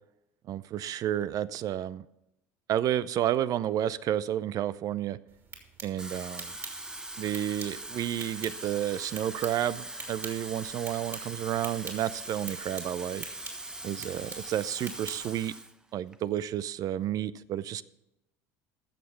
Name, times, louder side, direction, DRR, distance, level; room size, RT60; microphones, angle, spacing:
voice 1, 0.5-2.0 2.7-5.2 5.8-6.5 7.2-13.3 13.8-15.5 15.9-17.8, right 11 dB, 50° right, 17 dB, 0.5 m, -31 dB
sound 1, 5.3-15.5, right 4 dB, 35° right, 3.0 m, -47 dB
Water tap faucet / Fill (with liquid), 5.8-15.7 16.1-16.4, right 1 dB, 10° right, 0.9 m, -41 dB
15.0 x 6.5 x 5.8 m, 0.88 s
hypercardioid pair, 80°, 8 cm